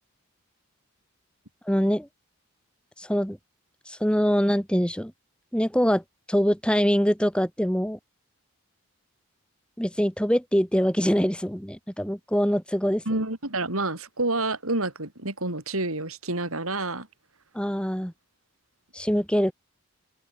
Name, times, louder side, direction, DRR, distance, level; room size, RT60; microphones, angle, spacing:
voice 1, 1.7-2.1 3.0-3.4 3.9-5.1 5.5-6.0 6.3-8.0 9.8-13.0 17.5-18.1 18.9-19.5, equal, 5° left, 4.1 m, -24 dB
voice 2, 13.1-17.1, right 2 dB, 75° right, 6.1 m, -28 dB
head